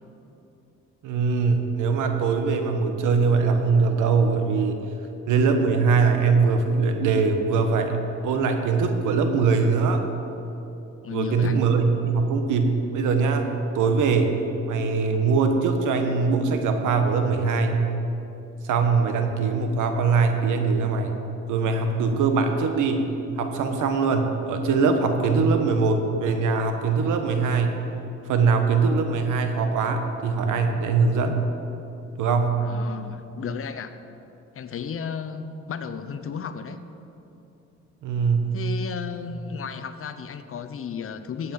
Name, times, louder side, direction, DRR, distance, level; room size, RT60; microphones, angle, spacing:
voice 1, 1.0-4.8 5.3-8.0 8.2-10.0 11.1-14.3 14.7-17.8 18.6-21.1 21.5-23.1 23.4-27.7 28.3-31.4 32.2-32.6 38.0-38.6, right 4 dB, 85° right, 5 dB, 1.4 m, -22 dB
voice 2, 11.0-11.6 32.6-33.9 34.5-36.8 38.5-41.5, left 7 dB, 45° left, 10 dB, 0.8 m, -34 dB
15.0 x 8.6 x 5.5 m, 2.9 s
cardioid pair, 90°, 30 cm